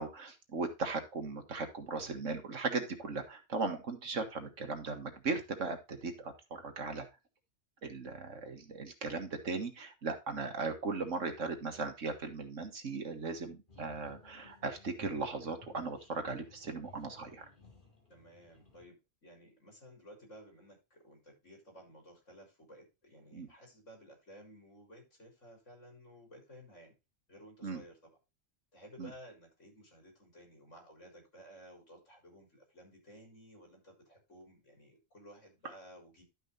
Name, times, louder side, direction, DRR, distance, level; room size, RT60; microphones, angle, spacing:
voice 1, 0.0-7.1 7.8-17.4 23.3-23.5 27.6-27.8 29.0-29.1, right 4 dB, 85° right, 6 dB, 2.0 m, -38 dB
sound 1, 13.7-18.9, left 3 dB, 45° left, 2.9 m, -58 dB
voice 2, 18.1-26.9 27.3-28.1 28.7-36.2, equal, 75° left, 1 dB, 4.6 m, -55 dB
12.0 x 5.6 x 4.0 m, 0.25 s
omnidirectional pair, 1.3 m